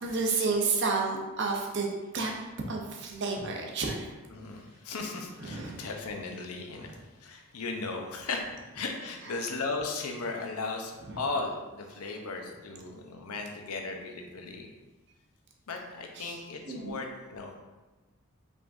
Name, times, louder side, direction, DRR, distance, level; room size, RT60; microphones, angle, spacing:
voice 1, 0.0-1.9 2.1-2.3 2.7-4.1 5.4-5.8 11.1-11.2 16.2-16.4 16.7-17.0, right 4 dB, 50° right, 0 dB, 0.7 m, -30 dB
voice 2, 4.3-7.0 7.2-8.4 8.7-14.7 15.7-17.6, left 3 dB, 85° left, 2 dB, 0.7 m, -36 dB
5.0 x 3.6 x 2.6 m, 1.2 s
head